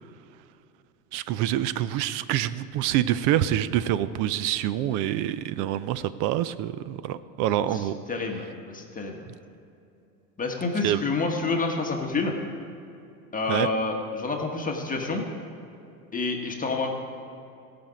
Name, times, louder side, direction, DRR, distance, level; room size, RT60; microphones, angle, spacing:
voice 1, 1.1-8.0 10.8-11.0 13.5-13.7, right 12 dB, 40° right, 15 dB, 0.5 m, -26 dB
voice 2, 7.7-9.2 10.4-12.3 13.3-15.3 16.1-16.9, left 3 dB, 15° left, 2 dB, 1.4 m, -28 dB
18.0 x 6.0 x 5.1 m, 2.6 s
hypercardioid pair, 100°, 49 cm